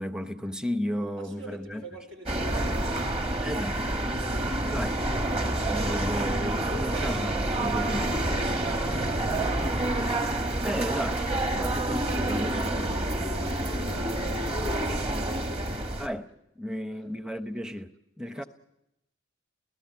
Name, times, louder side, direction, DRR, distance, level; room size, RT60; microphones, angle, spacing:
voice 1, 0.0-1.8 3.4-3.8 4.7-5.0 5.6-8.1 10.6-11.2 11.5-12.8 16.0-16.3 16.6-17.9 18.2-18.4, equal, 5° right, 0.8 m, -33 dB
voice 2, 1.2-4.9 6.6-9.7 11.5-15.5 16.9-17.0 18.3-18.5, equal, 80° right, 4.5 m, -46 dB
sound 1, 2.3-16.1, right 1 dB, 30° right, 1.5 m, -28 dB
28.0 x 17.0 x 8.0 m
head